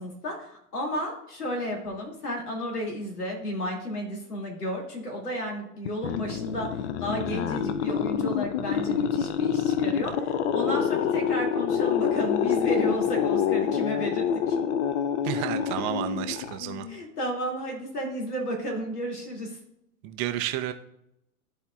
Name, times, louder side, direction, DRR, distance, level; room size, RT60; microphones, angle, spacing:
voice 1, 0.0-14.6 16.9-19.6, equal, 80° left, 2.5 m, -32 dB
sound 1, 5.9-17.0, left 8 dB, 50° left, 0.5 m, -27 dB
voice 2, 15.2-16.9 20.0-20.7, right 12 dB, 25° right, 0.4 m, -31 dB
12.5 x 4.3 x 2.4 m
figure-of-eight pair, 100°, 45 cm